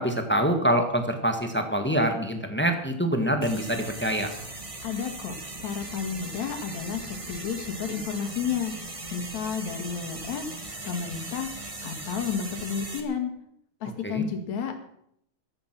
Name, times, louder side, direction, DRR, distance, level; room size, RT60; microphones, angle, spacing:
voice 1, 0.0-4.3 14.0-14.2, right 1 dB, 10° left, 5 dB, 0.5 m, -25 dB
sound 1, 3.4-13.0, right 2 dB, 35° right, 0.5 m, -39 dB
voice 2, 4.8-5.3 5.6-8.7 9.1-10.4 10.8-11.5 11.8-13.3 13.8-14.7, left 7 dB, 70° left, 5 dB, 3.3 m, -31 dB
15.5 x 12.5 x 6.0 m, 0.72 s
omnidirectional pair, 3.4 m